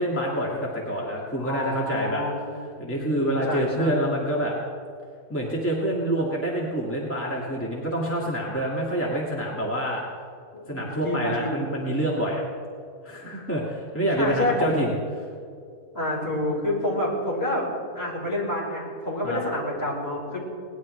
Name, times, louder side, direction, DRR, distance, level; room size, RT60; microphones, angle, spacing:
voice 1, 0.0-2.2 2.8-4.5 5.3-10.0 10.7-12.4 13.0-14.9 19.2-19.4, right 1 dB, 10° left, -4 dB, 1.8 m, -27 dB
voice 2, 1.4-4.1 10.5-11.6 14.1-14.9 15.9-17.6 17.9-20.4, left 1 dB, 40° left, -5 dB, 4.9 m, -28 dB
22.0 x 19.0 x 3.2 m, 2.3 s
omnidirectional pair, 1.6 m